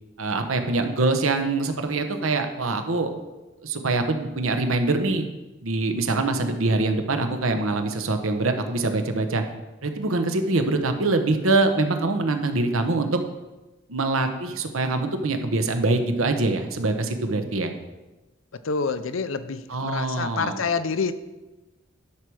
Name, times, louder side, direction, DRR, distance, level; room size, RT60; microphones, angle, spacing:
voice 1, 0.2-3.1 3.6-5.3 5.6-9.4 9.8-13.2 13.9-17.7 19.7-20.6, right 2 dB, 90° right, 6 dB, 1.0 m, -24 dB
voice 2, 18.6-21.1, left 5 dB, 75° left, 12 dB, 0.6 m, -27 dB
11.5 x 4.7 x 6.3 m, 1.1 s
head